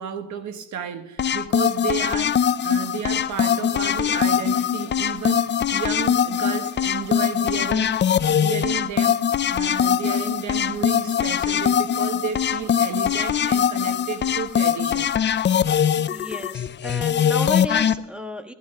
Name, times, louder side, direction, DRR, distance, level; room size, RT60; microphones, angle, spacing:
voice 1, 0.0-7.9 8.3-9.2 9.5-15.2, right 7 dB, 70° right, 1.4 m, -32 dB
sound 1, 1.2-17.9, left 8 dB, 35° left, 0.5 m, -22 dB
voice 2, 16.1-18.5, left 1 dB, 5° right, 1.3 m, -33 dB
14.0 x 12.5 x 3.6 m
cardioid pair, 90°, 30 cm